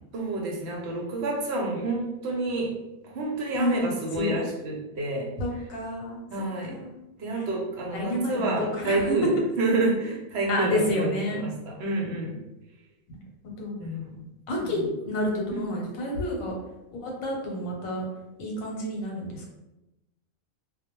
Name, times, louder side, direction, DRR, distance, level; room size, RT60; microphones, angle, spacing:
voice 1, 0.1-2.7 3.1-5.3 6.3-6.8 7.2-12.4 13.8-14.3 14.6-14.9 15.5-15.6, right 2 dB, 65° right, -1 dB, 0.8 m, -29 dB
voice 2, 3.5-3.9 4.2-4.4 5.4-6.2 6.7-7.0 7.9-9.2 10.5-11.4 13.1-13.7 14.5-16.6 16.9-18.0 18.4-19.4, left 1 dB, 80° left, -1 dB, 1.1 m, -29 dB
2.3 x 2.0 x 2.9 m, 0.96 s
omnidirectional pair, 1.4 m